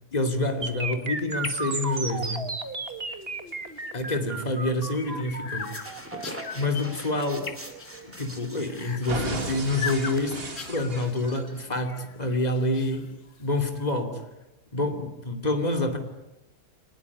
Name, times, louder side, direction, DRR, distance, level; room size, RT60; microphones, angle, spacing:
voice 1, 0.1-2.4 3.9-5.9 6.5-7.5 8.0-13.1 13.4-14.2 14.7-16.0, left 2 dB, 25° left, 2.9 m, -27 dB
sound 1, 0.6-8.6 9.1-11.6, right 3 dB, 40° right, 2.3 m, -35 dB
sound 2, 1.3-13.8, left 6 dB, 55° left, 1.9 m, -41 dB
sound 3, 5.5-10.8, right 1 dB, 10° right, 2.9 m, -43 dB
25.5 x 20.0 x 9.7 m
omnidirectional pair, 1.6 m